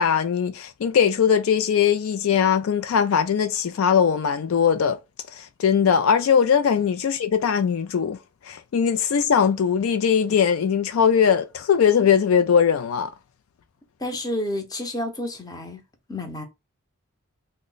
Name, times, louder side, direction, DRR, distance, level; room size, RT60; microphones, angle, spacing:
voice 1, 0.0-5.0 5.3-8.2 8.5-13.1, left 7 dB, 65° left, 0.4 m, -20 dB
voice 2, 14.0-15.8 16.1-16.4, left 1 dB, 20° left, 0.7 m, -30 dB
3.1 x 2.1 x 3.8 m
head